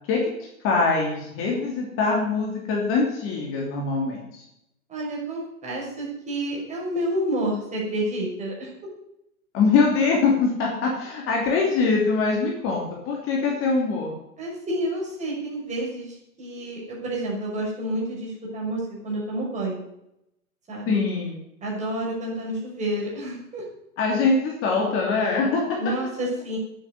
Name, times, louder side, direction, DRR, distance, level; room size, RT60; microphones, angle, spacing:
voice 1, 0.6-4.4 9.5-14.1 20.9-21.5 24.0-25.8, left 4 dB, 30° left, -1 dB, 3.0 m, -23 dB
voice 2, 4.9-8.7 14.4-19.8 20.7-21.0 21.6-23.6 25.8-26.6, right 1 dB, 15° right, -3 dB, 6.0 m, -29 dB
9.2 x 8.6 x 9.7 m, 0.82 s
figure-of-eight pair, 120°, 45 cm